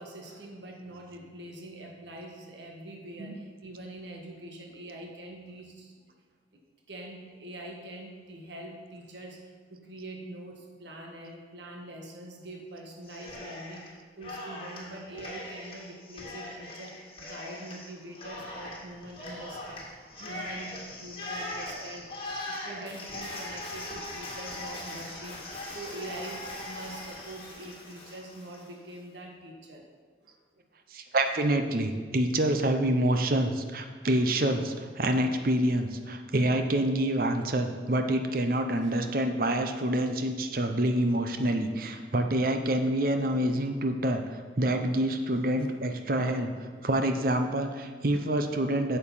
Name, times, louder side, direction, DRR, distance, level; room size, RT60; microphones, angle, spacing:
voice 1, 0.0-5.9 6.9-29.8 30.2-30.3 38.8-38.9 43.6-43.8 45.3-45.7, right 1 dB, 75° right, 0 dB, 1.5 m, -44 dB
Cheering, 13.0-13.9 14.2-28.7, left 1 dB, 30° left, 1.9 m, -40 dB
voice 2, 30.9-46.5 46.8-49.0, right 1 dB, 50° right, 6 dB, 0.8 m, -27 dB
8.6 x 6.8 x 5.6 m, 1.5 s
head